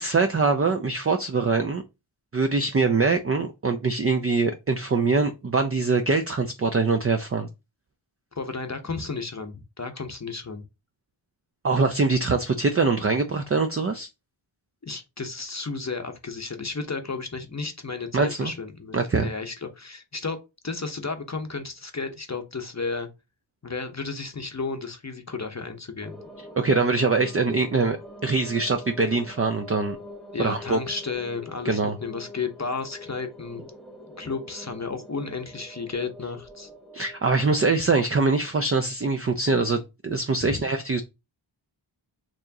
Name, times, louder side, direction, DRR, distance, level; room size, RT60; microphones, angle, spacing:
voice 1, 0.0-1.8 2.3-7.5 11.6-14.1 18.1-18.5 18.9-19.3 26.5-28.0 28.2-30.0 30.4-30.8 31.6-32.0 36.9-41.0, right 4 dB, 30° right, 0.5 m, -23 dB
voice 2, 8.4-10.6 14.8-20.4 20.6-23.1 23.6-26.2 30.3-33.6 34.2-36.7 40.4-40.7, left 4 dB, 35° left, 0.7 m, -33 dB
sound 1, 26.0-38.5, left 1 dB, ahead, 0.8 m, -44 dB
4.5 x 3.0 x 2.7 m
wide cardioid pair, 55°, 49 cm